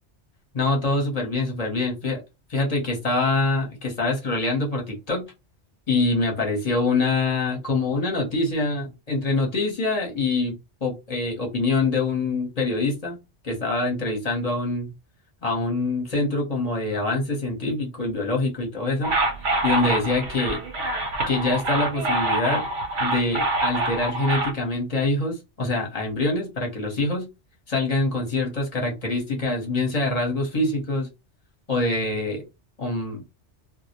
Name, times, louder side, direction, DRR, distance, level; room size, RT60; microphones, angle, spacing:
voice 1, 0.5-2.2 2.5-5.3 5.9-13.2 13.4-14.9 15.4-19.2 19.6-20.6 21.3-22.6 23.0-27.3 27.7-31.1 31.7-32.4 32.8-33.2, left 2 dB, 35° left, 0.8 m, -25 dB
sound 1, 19.0-24.5, right 2 dB, 80° right, 1.0 m, -25 dB
2.2 x 2.0 x 2.8 m
omnidirectional pair, 1.2 m